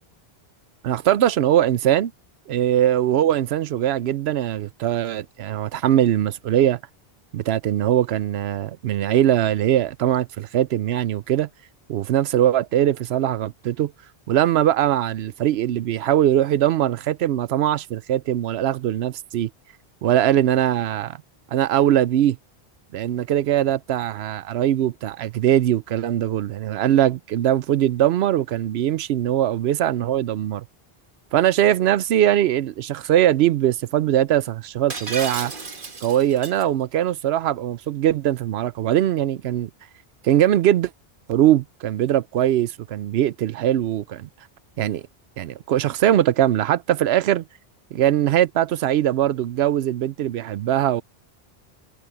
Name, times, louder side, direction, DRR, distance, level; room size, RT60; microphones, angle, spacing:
voice 1, 0.8-2.1 2.5-6.8 7.3-11.5 11.9-13.9 14.3-19.5 20.0-21.2 21.5-22.4 22.9-30.6 31.3-35.5 36.0-39.7 40.2-40.9 41.3-44.3 44.8-45.0 45.4-47.4 47.9-51.0, right 11 dB, 80° right, 0.8 m, -21 dB
Shatter, 34.9-36.6, right 4 dB, 55° right, 1.8 m, -33 dB
omnidirectional pair, 1.0 m